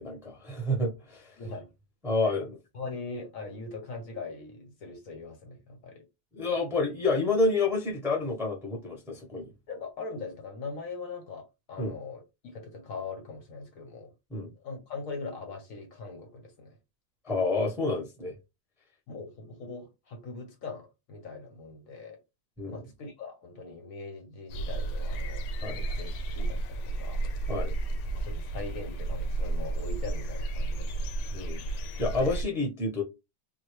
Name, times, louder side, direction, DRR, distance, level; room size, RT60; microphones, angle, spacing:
voice 1, 0.0-1.3 2.0-2.6 6.3-9.5 11.8-11.9 14.3-14.5 17.2-18.3 22.6-22.8 25.6-25.8 27.5-27.7 31.3-31.6 32.0-33.0, left 3 dB, ahead, 0.7 m, -29 dB
voice 2, 1.4-1.7 2.2-2.4 2.7-6.0 9.7-14.1 14.6-16.7 19.1-22.2 22.7-26.1 26.3-27.2 28.1-31.1, left 3 dB, 60° left, 1.0 m, -41 dB
sound 1, 24.5-32.4, right 2 dB, 80° left, 1.2 m, -32 dB
3.7 x 2.3 x 3.1 m
omnidirectional pair, 1.9 m